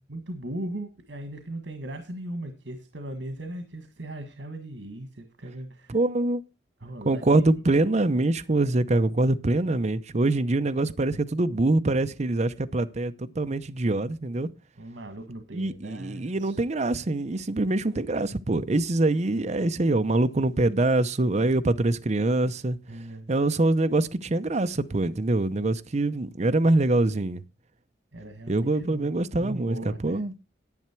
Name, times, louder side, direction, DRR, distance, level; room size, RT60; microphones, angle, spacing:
voice 1, 0.1-6.0 6.8-7.4 14.8-16.6 22.9-23.3 28.1-30.2, right 1 dB, 80° right, 1.8 m, -38 dB
voice 2, 5.9-6.4 7.0-14.5 15.5-22.8 23.3-27.4 28.5-29.8 30.0-30.3, right 2 dB, 40° right, 0.6 m, -24 dB
10.5 x 9.4 x 4.4 m
head